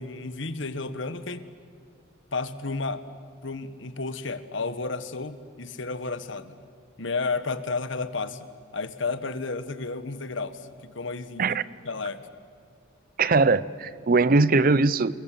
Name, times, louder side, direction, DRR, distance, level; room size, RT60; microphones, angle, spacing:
voice 1, 0.0-1.5 2.3-3.0 3.4-6.6 7.0-8.5 8.7-11.6 11.8-12.2, left 3 dB, 65° left, 12 dB, 1.4 m, -32 dB
voice 2, 13.2-15.2, right 3 dB, 45° right, 18 dB, 0.6 m, -21 dB
29.0 x 22.0 x 7.7 m, 2.2 s
head